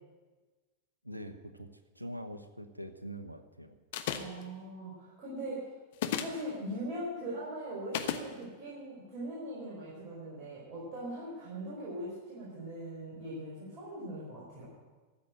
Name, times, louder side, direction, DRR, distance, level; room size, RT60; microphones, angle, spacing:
voice 1, 1.0-1.7 1.9-3.7, equal, 85° right, 8 dB, 1.0 m, -43 dB
sound 1, 3.9-4.4 5.9-6.4 7.9-8.3, left 9 dB, 55° left, 1.1 m, -33 dB
voice 2, 4.2-5.7 6.1-14.7, right 1 dB, 35° right, -6 dB, 5.2 m, -41 dB
14.0 x 7.6 x 9.0 m, 1.3 s
figure-of-eight pair, 90°, 0 cm